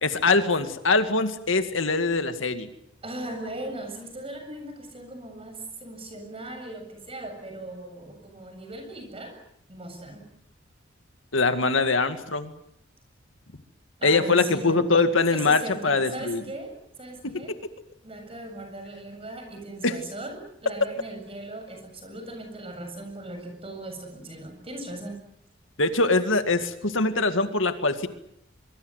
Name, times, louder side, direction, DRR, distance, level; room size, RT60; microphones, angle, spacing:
voice 1, 0.0-2.7 11.3-12.6 14.0-16.4 17.2-17.4 19.8-20.0 25.8-28.1, left 3 dB, 80° left, 9 dB, 2.1 m, -23 dB
voice 2, 3.0-9.3 9.7-10.3 14.0-17.5 18.0-25.2, right 2 dB, 30° right, 5 dB, 7.5 m, -38 dB
24.5 x 24.0 x 8.0 m, 0.74 s
head